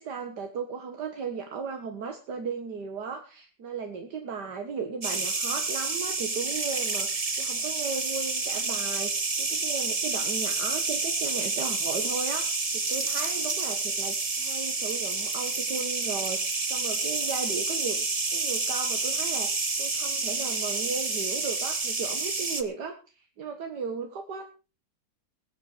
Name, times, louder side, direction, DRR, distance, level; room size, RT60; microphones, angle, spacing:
voice 1, 0.0-18.1 18.3-24.4, right 5 dB, 75° right, 5 dB, 2.1 m, -36 dB
sound 1, 5.0-22.6, right 3 dB, 25° right, 1.0 m, -29 dB
21.0 x 7.5 x 4.9 m, 0.34 s
omnidirectional pair, 1.8 m